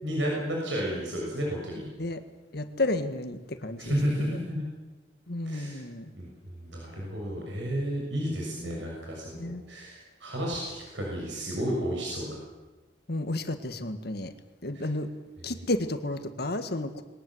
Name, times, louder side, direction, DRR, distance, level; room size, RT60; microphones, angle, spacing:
voice 1, 0.0-1.9 3.8-4.7 5.5-5.8 6.1-12.4 14.7-14.9 15.4-15.5, equal, 80° right, -2 dB, 6.6 m, -32 dB
voice 2, 2.5-4.4 5.3-6.1 8.2-8.8 9.3-9.6 13.1-14.3 14.6-15.1 15.4-17.0, left 2 dB, 60° left, 9 dB, 1.8 m, -32 dB
22.5 x 19.0 x 8.0 m, 1.2 s
head